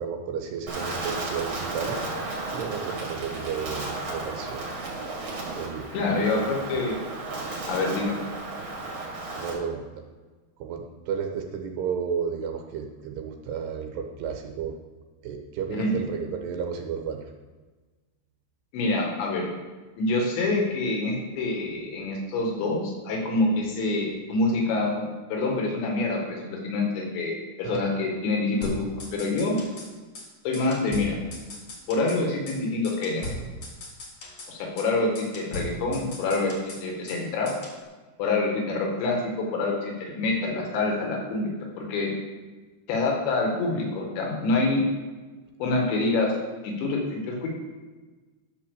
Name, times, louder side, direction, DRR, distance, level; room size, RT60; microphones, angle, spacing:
voice 1, 0.0-2.0 2.5-4.6 5.6-6.8 8.9-9.8 10.6-14.7 15.2-17.3 27.7-27.8, right 6 dB, 80° right, 3 dB, 2.9 m, -33 dB
Wind, 0.7-9.5, right 2 dB, 40° right, 2.9 m, -34 dB
voice 2, 5.9-7.0 7.7-8.2 15.7-15.9 18.7-19.5 20.0-25.0 25.3-29.6 30.4-31.2 31.9-33.3 34.5-37.5 38.2-41.5 41.8-42.1 42.9-44.8 45.6-46.3 46.6-47.5, left 2 dB, 80° left, -1 dB, 4.3 m, -26 dB
sound 1, 28.6-29.9 30.2-30.3 30.5-32.2 32.5-32.6 32.8-34.5 34.8-34.9 35.2-37.2 37.5-37.8, equal, 50° left, 1.9 m, -38 dB
11.5 x 5.7 x 6.7 m, 1.3 s
omnidirectional pair, 5.1 m